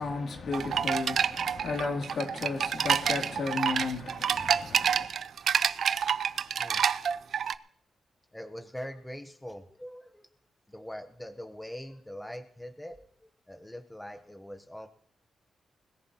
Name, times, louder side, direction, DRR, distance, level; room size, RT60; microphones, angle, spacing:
voice 1, 0.0-5.1, left 3 dB, 60° left, 2.8 m, -34 dB
sound 1, 0.5-7.5, right 7 dB, 65° right, 0.4 m, -28 dB
voice 2, 8.3-10.3 10.7-14.9, equal, 10° left, 1.0 m, -43 dB
21.0 x 14.5 x 3.0 m
cardioid pair, 105°, 0 cm